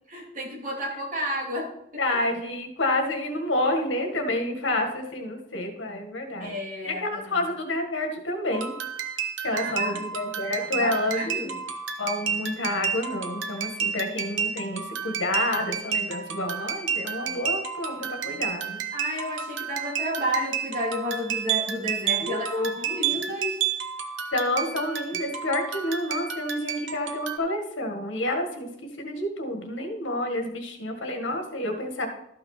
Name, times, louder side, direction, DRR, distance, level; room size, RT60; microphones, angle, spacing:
voice 1, 0.1-2.0 6.4-7.4 9.5-10.1 10.4-11.5 18.9-23.6, equal, 45° right, -2 dB, 2.8 m, -32 dB
voice 2, 2.0-6.5 6.8-8.7 9.4-11.5 12.0-18.8 22.2-23.1 24.3-32.1, left 1 dB, 90° left, 4 dB, 1.7 m, -29 dB
sound 1, 8.5-27.4, right 7 dB, 80° right, 0.8 m, -31 dB
13.0 x 5.8 x 4.1 m, 0.78 s
head